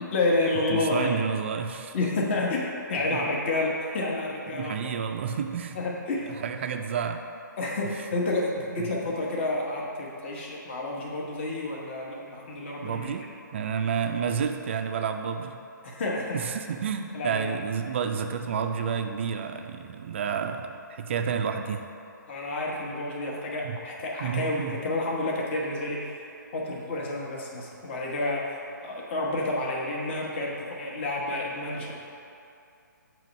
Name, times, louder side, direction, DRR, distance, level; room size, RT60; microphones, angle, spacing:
voice 1, 0.1-1.1 1.9-4.8 5.7-6.3 7.6-13.1 15.8-16.4 17.1-17.5 22.3-26.2 26.5-28.5 28.8-32.0, left 2 dB, 35° left, -2 dB, 1.0 m, -29 dB
voice 2, 0.7-2.0 3.1-3.3 4.5-5.8 6.4-7.2 8.8-8.9 12.8-15.6 16.3-21.9 23.6-23.8 24.2-24.8, right 7 dB, 35° right, 6 dB, 0.4 m, -30 dB
7.4 x 3.0 x 5.2 m, 2.6 s
hypercardioid pair, 155°, 11 cm